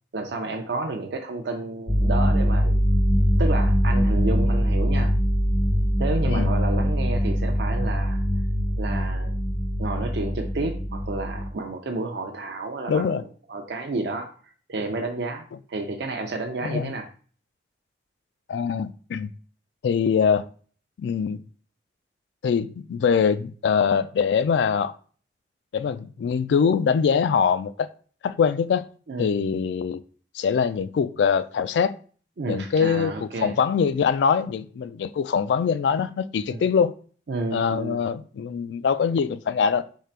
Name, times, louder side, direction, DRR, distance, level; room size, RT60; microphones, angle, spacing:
voice 1, 0.1-2.8 3.4-5.1 6.0-8.2 8.8-9.3 9.8-13.2 13.5-14.3 14.7-17.1 29.1-29.4 32.4-33.6 36.5-36.6 37.3-38.0, right 2 dB, 75° right, 0.5 m, -31 dB
sound 1, 1.9-11.5, equal, 15° left, 0.4 m, -22 dB
voice 2, 12.9-13.2 16.6-16.9 18.5-19.3 19.8-20.5 21.0-21.4 22.4-24.9 25.7-27.9 28.2-28.9 29.2-30.0 30.3-32.0 32.5-36.9 37.5-40.0, left 6 dB, 85° left, 0.3 m, -23 dB
3.7 x 3.2 x 4.4 m
head